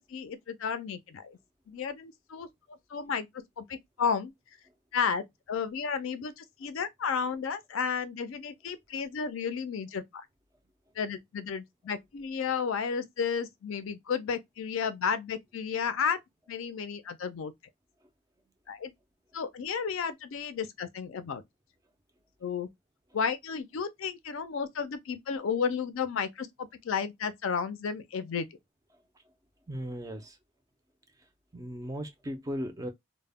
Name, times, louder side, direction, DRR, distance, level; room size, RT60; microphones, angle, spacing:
voice 1, 0.1-1.4 1.7-3.3 3.6-4.3 4.9-10.2 11.0-16.2 16.5-17.5 18.7-18.9 19.3-21.4 22.4-22.7 23.1-28.5, left 6 dB, 70° left, 0.4 m, -32 dB
voice 2, 29.7-30.4 31.5-32.9, equal, 15° right, 0.4 m, -37 dB
2.1 x 2.0 x 3.4 m
head